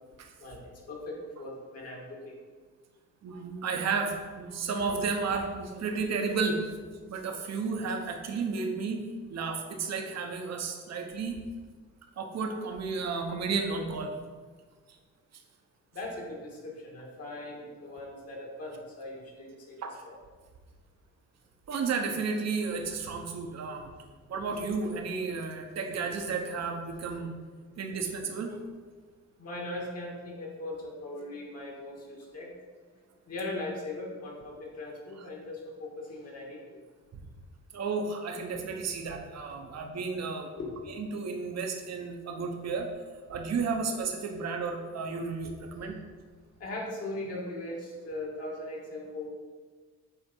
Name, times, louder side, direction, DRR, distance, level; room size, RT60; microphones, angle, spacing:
voice 1, 0.4-2.4 15.9-19.8 20.1-20.2 29.4-32.5 33.3-36.8 40.5-40.9 46.6-49.3, left 2 dB, 55° left, -2 dB, 2.4 m, -39 dB
voice 2, 3.2-6.6 7.0-11.4 12.2-14.1 19.8-20.0 21.7-23.9 24.3-27.3 27.8-28.6 37.7-40.5 40.9-42.9 43.3-46.0, right 4 dB, 60° right, 4 dB, 1.1 m, -32 dB
8.6 x 3.6 x 5.4 m, 1.5 s
cardioid pair, 90°, 30 cm